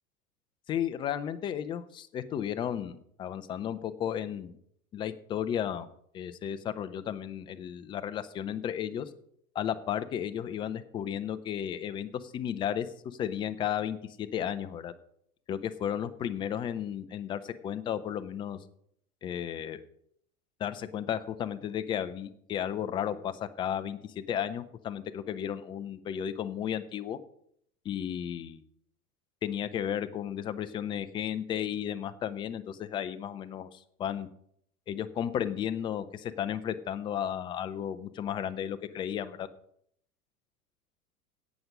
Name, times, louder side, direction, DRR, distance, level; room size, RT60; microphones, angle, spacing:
voice 1, 0.7-4.6 4.9-5.9 6.1-9.1 9.5-14.9 15.5-18.6 19.2-19.8 20.6-27.2 27.8-28.6 29.4-34.3 34.9-39.5, left 9 dB, 10° left, 11 dB, 0.3 m, -34 dB
16.5 x 6.0 x 5.2 m, 0.70 s
figure-of-eight pair, 90°, 46 cm